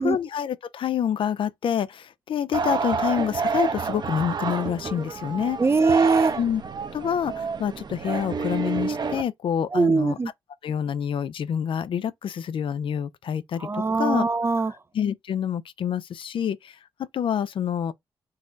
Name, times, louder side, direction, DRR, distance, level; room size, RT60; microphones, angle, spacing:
voice 1, 0.0-5.6 6.4-6.6 6.9-10.2 10.6-14.3 14.9-16.8 17.1-17.9, left 8 dB, 65° left, 0.5 m, -27 dB
sound 1, 2.5-9.2, right 5 dB, 50° right, 0.8 m, -28 dB
voice 2, 5.6-6.4 9.7-10.3 13.6-14.7, right 4 dB, 25° right, 0.5 m, -22 dB
4.0 x 2.4 x 3.9 m
supercardioid pair, 60°, 10 cm